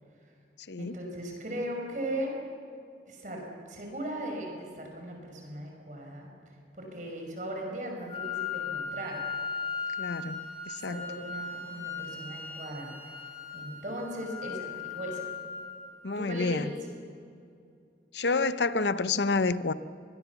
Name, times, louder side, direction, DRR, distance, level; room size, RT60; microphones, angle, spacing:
voice 1, 0.8-2.4 3.1-6.3 6.7-9.2 10.8-13.1 13.5-15.3 16.2-16.8, right 1 dB, 45° right, 5.6 m, -38 dB
Wind instrument woodwind instrument, 8.1-16.0, left 5 dB, 30° left, 6.1 m, -38 dB
voice 2, 10.0-11.1 16.0-16.7 18.1-19.7, left 3 dB, 80° left, 0.8 m, -29 dB
25.0 x 21.0 x 7.1 m
head